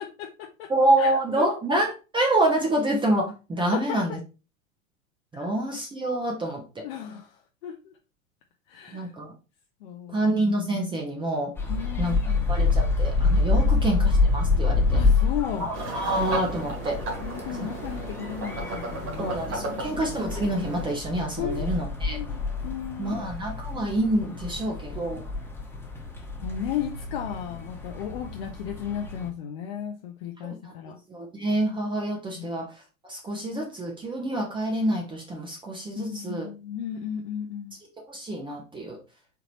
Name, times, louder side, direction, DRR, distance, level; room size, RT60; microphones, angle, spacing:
voice 1, 0.0-0.7 1.0-1.4 3.7-4.0 5.3-5.5 6.8-7.4 7.6-7.9 8.7-9.1 9.8-10.3 11.7-12.6 13.7-13.8 14.9-15.7 17.2-20.0 21.4-21.7 22.1-23.2 26.4-31.0 32.4-32.6 35.9-37.8, left 9 dB, 45° left, 2 dB, 0.7 m, -35 dB
voice 2, 0.7-4.2 5.3-6.8 8.9-9.3 10.1-11.5 12.0-12.1 12.5-15.0 15.6-17.0 19.2-22.2 23.0-25.2 30.4-30.7 31.1-32.7 33.1-36.5 38.1-39.0, right 1 dB, 10° right, 0 dB, 0.8 m, -27 dB
sound 1, 11.6-29.3, left 3 dB, 5° left, 1.2 m, -27 dB
sound 2, 15.7-21.0, right 2 dB, 40° right, 2.0 m, -35 dB
4.5 x 3.8 x 3.0 m, 0.31 s
figure-of-eight pair, 90°, 41 cm